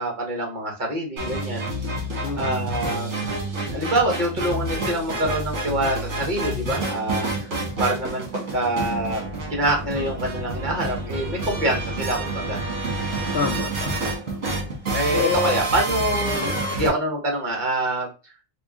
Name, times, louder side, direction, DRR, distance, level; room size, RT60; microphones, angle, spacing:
voice 1, 0.0-1.7 2.4-3.2 3.7-7.5 7.8-9.2 9.5-12.6 14.4-18.1, right 1 dB, 40° right, 1 dB, 1.3 m, -26 dB
sound 1, 1.2-16.9, right 2 dB, 65° right, 1.6 m, -28 dB
voice 2, 2.2-2.6 13.3-14.5 15.1-15.6 16.3-16.6, left 5 dB, 55° left, 1 dB, 0.7 m, -28 dB
3.6 x 2.3 x 3.5 m, 0.30 s
omnidirectional pair, 1.3 m